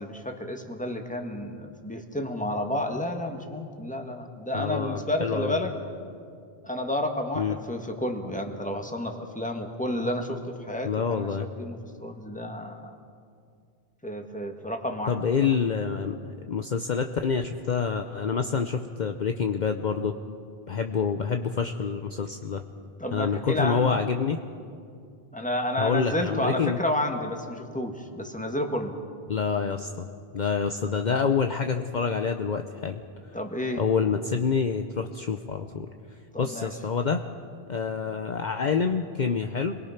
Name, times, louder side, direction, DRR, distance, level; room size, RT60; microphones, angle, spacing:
voice 1, 0.0-5.7 6.6-12.9 14.0-15.2 23.0-24.0 25.3-29.0 33.3-33.8 36.3-36.7, left 1 dB, 5° left, 3 dB, 1.7 m, -31 dB
voice 2, 4.5-5.6 7.4-7.6 10.8-11.5 15.1-20.1 20.7-22.6 23.1-24.4 25.8-26.8 29.3-30.1 30.3-33.0 33.8-35.9 36.4-37.2 37.7-39.8, left 6 dB, 50° left, 6 dB, 0.8 m, -27 dB
27.5 x 22.0 x 5.9 m, 2.4 s
omnidirectional pair, 1.0 m